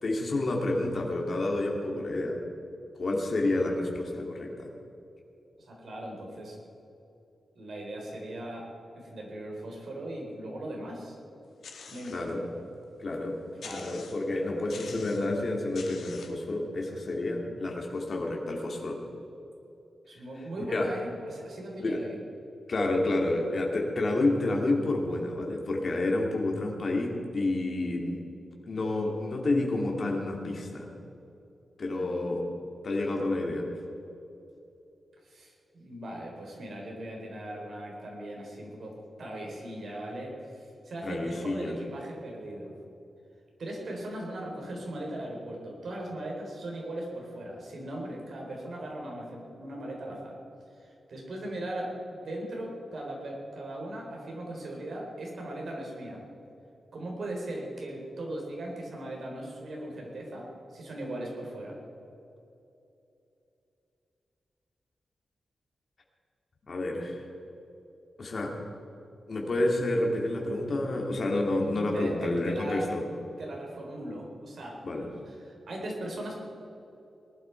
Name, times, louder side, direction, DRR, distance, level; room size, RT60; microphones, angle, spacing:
voice 1, 0.0-2.4 3.0-4.7 12.1-12.4 13.0-13.4 13.7-19.0 20.7-20.9 21.8-22.0 22.7-28.2 28.7-30.9 31.8-32.4 32.8-33.6 41.0-41.7 66.7-67.2 68.2-68.5 69.3-73.0 74.8-75.1, left 2 dB, 45° left, 0 dB, 2.6 m, -29 dB
voice 2, 5.6-6.6 7.5-8.7 8.9-11.2 11.9-12.5 13.6-14.0 14.4-14.6 20.1-22.2 35.2-42.7 43.6-50.4 50.8-56.2 56.9-61.8 71.9-72.9 73.4-74.8 75.3-76.4, right 1 dB, 60° right, -1 dB, 4.0 m, -39 dB
sound 1, 11.6-12.3 12.8-12.9 13.6-14.3 14.7-15.3 15.7-16.4, left 5 dB, 85° left, 1.6 m, -46 dB
19.5 x 12.0 x 4.6 m, 2.8 s
wide cardioid pair, 140°, 0 cm